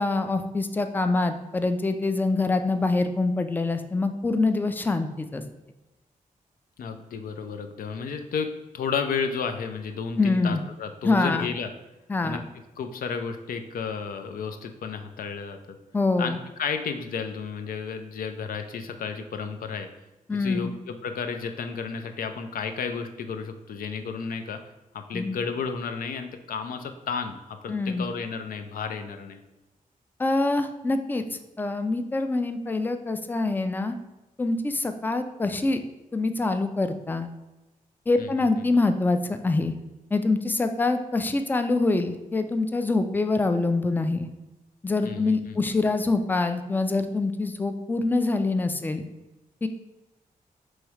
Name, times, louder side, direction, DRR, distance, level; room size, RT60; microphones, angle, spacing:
voice 1, 0.0-5.4 10.2-10.6 11.0-11.5 12.1-12.4 15.9-16.4 20.3-20.7 25.1-25.4 27.7-28.1 30.2-33.9 34.4-35.8 36.1-37.3 38.1-39.7 40.1-44.3 44.8-49.0 49.6-49.7, left 3 dB, 15° left, 8 dB, 0.3 m, -25 dB
voice 2, 6.8-11.7 12.2-12.4 12.8-15.8 16.2-19.9 20.4-24.6 24.9-29.4 38.2-38.5 45.0-45.6, left 5 dB, 80° left, 7 dB, 0.5 m, -32 dB
3.2 x 3.1 x 4.7 m, 1.0 s
cardioid pair, 90°, 14 cm